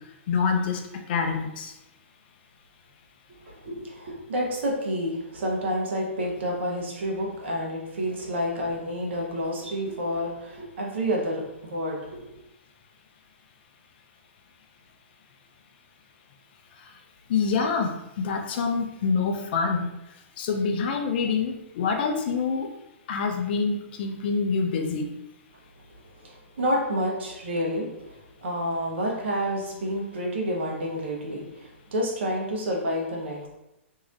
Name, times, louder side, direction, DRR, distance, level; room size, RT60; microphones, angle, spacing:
voice 1, 0.3-0.8 1.1-1.7 17.3-19.9 20.4-22.7 23.1-25.1, left 5 dB, 50° left, 3 dB, 0.5 m, -26 dB
voice 2, 3.5-12.4 26.2-33.5, equal, 60° right, -1 dB, 0.9 m, -29 dB
3.1 x 2.7 x 2.5 m, 0.89 s
figure-of-eight pair, 120°, 7 cm